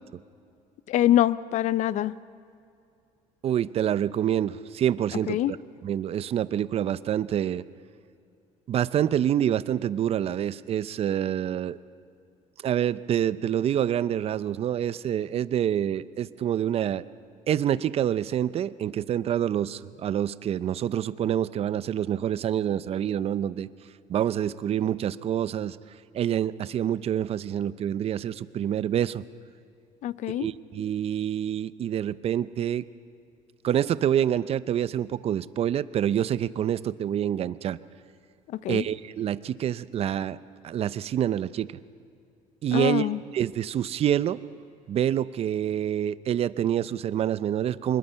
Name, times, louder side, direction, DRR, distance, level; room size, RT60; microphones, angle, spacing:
voice 1, 0.9-2.1 5.3-5.5 30.0-30.5 38.5-38.8 42.7-43.2, left 12 dB, 60° left, 17 dB, 0.6 m, -24 dB
voice 2, 3.4-5.4 5.8-7.6 8.7-11.8 12.6-17.0 17.5-23.7 24.1-25.8 26.1-29.2 30.4-32.8 33.6-37.8 38.7-40.4 40.6-41.7 42.6-43.1 43.3-44.4 44.9-48.0, right 10 dB, 45° right, 16 dB, 0.6 m, -27 dB
24.0 x 21.5 x 5.7 m, 2.4 s
cardioid pair, 105°, 14 cm